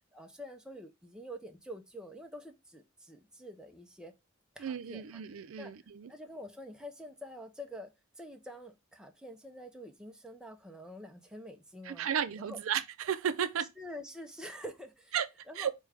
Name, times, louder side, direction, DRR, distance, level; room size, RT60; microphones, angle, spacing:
voice 1, 0.1-4.1 4.6-12.1 12.4-12.6 13.8-15.2 15.5-15.7, equal, 5° right, 0.5 m, -47 dB
voice 2, 4.6-6.1 11.8-13.7 15.1-15.3 15.6-15.7, right 8 dB, 70° right, 0.4 m, -34 dB
4.9 x 2.2 x 4.7 m
head